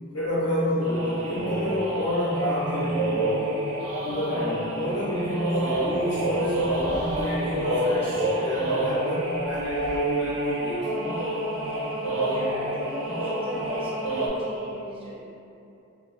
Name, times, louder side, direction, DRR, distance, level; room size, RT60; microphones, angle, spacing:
voice 1, 0.1-3.2 4.0-10.9, left 1 dB, 70° left, -11 dB, 0.6 m, -29 dB
sound 1, 0.8-14.3, right 1 dB, 80° right, 0.5 m, -28 dB
sound 2, 6.3-8.2 9.2-10.7, equal, 25° left, 0.6 m, -42 dB
voice 2, 12.1-15.2, left 1 dB, 25° right, -6 dB, 0.4 m, -37 dB
2.6 x 2.4 x 2.4 m, 2.7 s
head